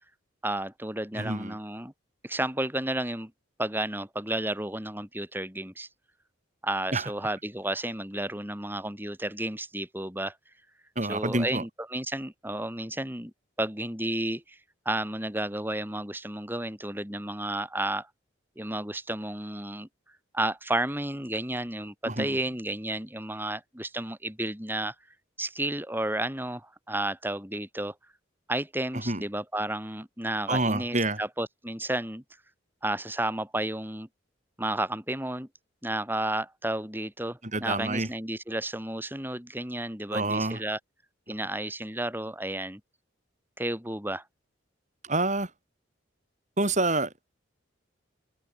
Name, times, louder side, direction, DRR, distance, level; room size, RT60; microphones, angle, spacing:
voice 1, 0.4-1.9 2.2-3.3 3.6-5.9 6.6-10.4 11.0-13.3 13.6-14.6 14.9-18.1 18.6-19.9 20.3-25.0 25.4-27.9 28.5-32.2 32.8-34.1 34.6-35.5 35.8-40.8 41.3-42.8 43.6-44.2, right 1 dB, 10° right, 6.9 m, -32 dB
voice 2, 1.2-1.6 6.9-7.1 11.0-11.6 22.1-22.4 29.1-29.2 30.5-31.2 37.5-38.1 40.1-40.6 45.1-45.5 46.6-47.1, right 2 dB, 35° right, 5.4 m, -27 dB
head